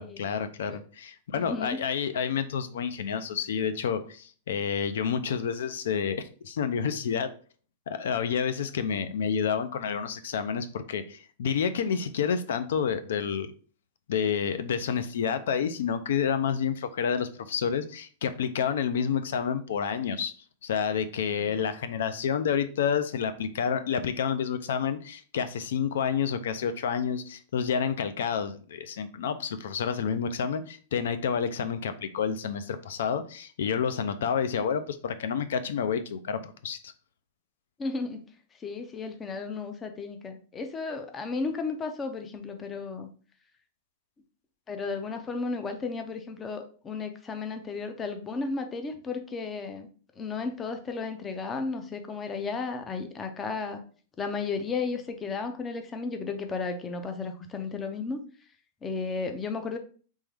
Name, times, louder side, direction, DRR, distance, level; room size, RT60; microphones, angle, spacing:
voice 1, 0.0-7.3 7.9-13.5 14.1-20.3 20.6-36.9, left 7 dB, 80° left, 11 dB, 0.4 m, -29 dB
voice 2, 1.4-1.8 37.8-38.2 38.6-43.1 44.7-49.9 50.2-53.8 54.2-58.2 58.8-59.8, left 4 dB, 15° left, 6 dB, 0.4 m, -34 dB
3.6 x 3.0 x 3.3 m, 0.41 s
supercardioid pair, 170°, 0 cm